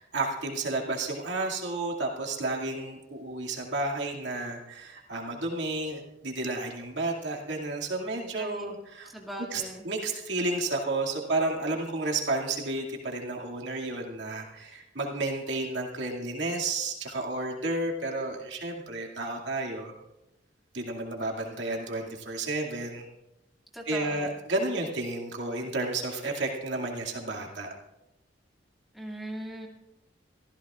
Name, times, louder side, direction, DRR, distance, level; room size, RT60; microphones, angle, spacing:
voice 1, 0.0-9.1 9.5-19.9 20.7-23.1 23.9-27.7, right 2 dB, 70° right, 0 dB, 2.3 m, -32 dB
voice 2, 8.4-8.8 9.0-9.9 23.7-24.3 28.9-29.7, right 1 dB, ahead, -2 dB, 2.3 m, -39 dB
25.0 x 14.5 x 2.5 m, 0.90 s
head